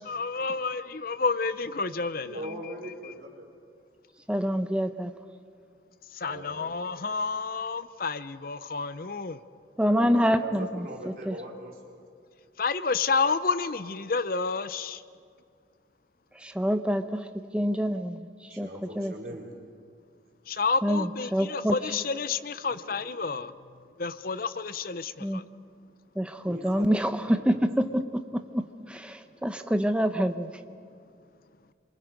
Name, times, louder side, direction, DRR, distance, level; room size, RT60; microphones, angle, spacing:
voice 1, 0.1-3.1 6.1-9.4 12.6-15.0 20.5-23.5 24.0-25.4, left 4 dB, 50° left, 13 dB, 0.7 m, -30 dB
voice 2, 2.2-3.5 6.2-6.7 9.8-12.0 18.5-19.5 26.5-26.8 27.2-27.6, equal, 50° right, -2 dB, 4.3 m, -41 dB
voice 3, 4.3-5.1 9.8-10.9 11.3-11.4 16.4-17.2 17.5-18.7 19.0-19.1 20.8-21.7 25.2-25.4 26.2-28.0 28.5-28.6 28.9-30.5, equal, 5° right, 8 dB, 0.8 m, -26 dB
27.5 x 24.5 x 5.2 m, 2.2 s
head